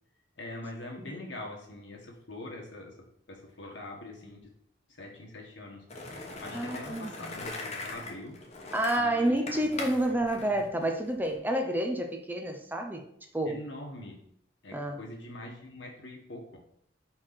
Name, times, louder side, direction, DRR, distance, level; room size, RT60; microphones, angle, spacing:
voice 1, 0.4-3.0 3.3-4.5 4.9-5.8 6.4-8.4 8.9-10.6 13.5-14.2 14.6-16.6, left 1 dB, 80° left, 0 dB, 1.8 m, -43 dB
Skateboard, 5.9-11.4, left 2 dB, 35° left, 1.1 m, -41 dB
voice 2, 6.5-7.1 8.7-13.1 13.3-13.6 14.7-15.0, right 1 dB, 10° right, 4 dB, 0.6 m, -29 dB
4.6 x 4.6 x 5.9 m, 0.71 s
head